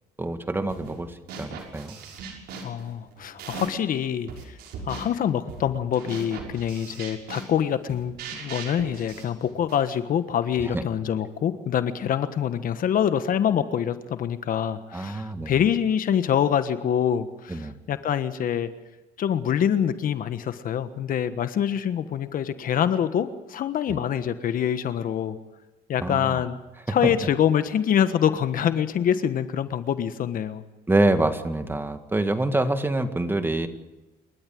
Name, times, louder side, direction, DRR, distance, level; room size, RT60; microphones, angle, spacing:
voice 1, 0.2-2.0 10.7-10.8 14.9-15.5 17.5-17.8 23.9-24.0 26.0-26.4 26.9-27.1 30.9-33.7, right 2 dB, 15° right, 8 dB, 2.0 m, -26 dB
sound 1, 0.7-1.0 1.3-3.9 4.3-10.0, right 5 dB, 75° right, 6.2 m, -39 dB
voice 2, 2.6-4.6 4.8-18.7 19.2-25.4 25.9-26.6 26.9-30.6, left 9 dB, 55° left, 11 dB, 1.4 m, -25 dB
28.5 x 13.5 x 7.8 m, 1.1 s
cardioid pair, 110°, 17 cm